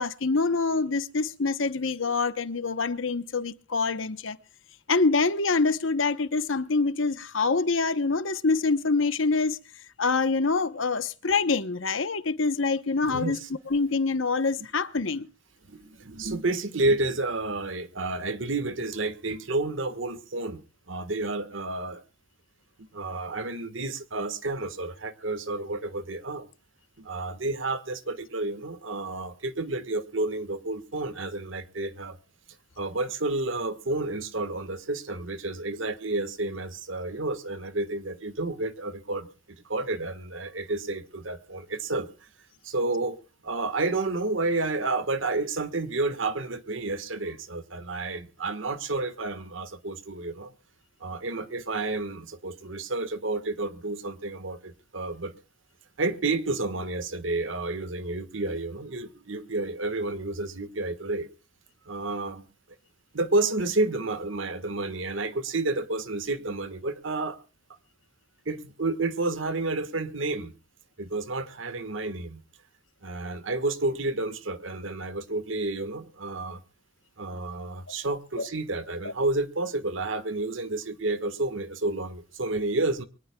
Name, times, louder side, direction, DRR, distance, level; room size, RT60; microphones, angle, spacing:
voice 1, 0.0-4.4 4.9-9.6 10.0-13.4 13.7-15.3 78.4-78.5 79.0-79.1, left 4 dB, 70° left, 0.9 m, -25 dB
voice 2, 13.0-13.5 14.6-14.7 15.6-20.6 20.9-22.0 22.8-26.5 27.0-32.2 32.8-39.3 39.6-42.1 42.6-43.2 43.4-50.5 51.0-55.3 56.0-61.3 61.8-62.4 63.1-67.4 68.4-70.6 71.0-72.4 73.0-76.6 77.2-83.0, right 2 dB, 65° right, 1.5 m, -30 dB
23.5 x 18.5 x 2.3 m
head